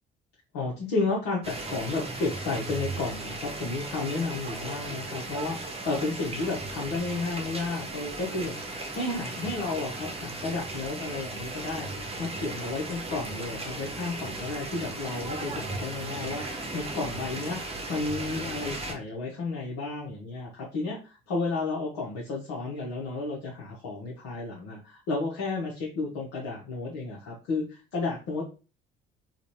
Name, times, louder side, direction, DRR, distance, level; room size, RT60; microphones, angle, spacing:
voice 1, 0.5-8.6 8.9-11.9 12.2-17.6 17.9-28.4, left 3 dB, 65° left, -5 dB, 1.1 m, -32 dB
sound 1, 1.4-18.9, right 2 dB, 20° right, 0.9 m, -36 dB
3.9 x 2.4 x 3.1 m, 0.33 s
hypercardioid pair, 50°, 29 cm